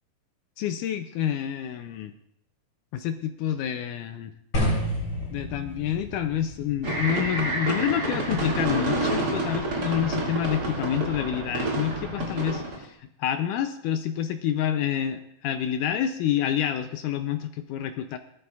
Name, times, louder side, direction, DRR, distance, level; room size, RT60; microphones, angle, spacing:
voice 1, 0.6-2.1 2.9-4.3 5.3-18.2, left 10 dB, 80° left, 8 dB, 1.8 m, -28 dB
sound 1, 4.5-10.7, equal, 30° left, 3.7 m, -33 dB
sound 2, 6.8-12.8, right 2 dB, 30° right, 2.3 m, -28 dB
19.0 x 13.0 x 2.4 m, 0.73 s
omnidirectional pair, 4.2 m